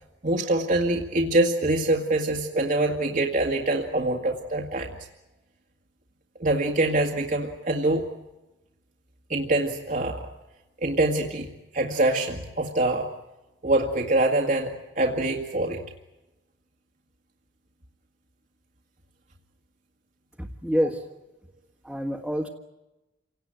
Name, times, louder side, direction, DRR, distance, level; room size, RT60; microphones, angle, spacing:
voice 1, 0.2-4.9 6.4-8.1 9.3-10.3 10.8-11.5 11.7-13.1 13.6-15.8, right 2 dB, 45° right, 1 dB, 1.9 m, -24 dB
voice 2, 20.4-21.0 21.8-22.5, equal, ahead, -1 dB, 1.7 m, -27 dB
28.5 x 18.0 x 9.1 m, 1.0 s
head